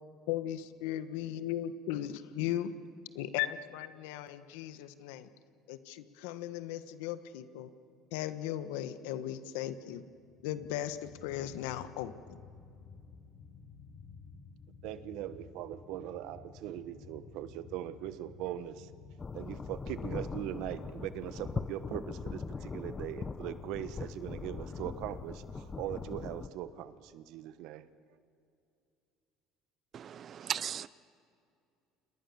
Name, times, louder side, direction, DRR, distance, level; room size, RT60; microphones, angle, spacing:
voice 1, 0.3-2.7 3.1-5.3 5.7-7.7 8.1-10.0 10.4-12.4, left 12 dB, 90° left, 11 dB, 1.4 m, -37 dB
sound 1, 10.2-26.3, left 5 dB, 50° left, 4.0 m, -53 dB
voice 2, 14.8-18.9 19.3-27.9, right 12 dB, 70° right, 13 dB, 1.3 m, -40 dB
sound 2, 19.2-26.5, left 4 dB, 25° left, 1.0 m, -41 dB
voice 3, 29.9-30.9, right 9 dB, 45° right, 18 dB, 0.8 m, -37 dB
29.5 x 27.5 x 7.1 m, 2.5 s
supercardioid pair, 110°, 0 cm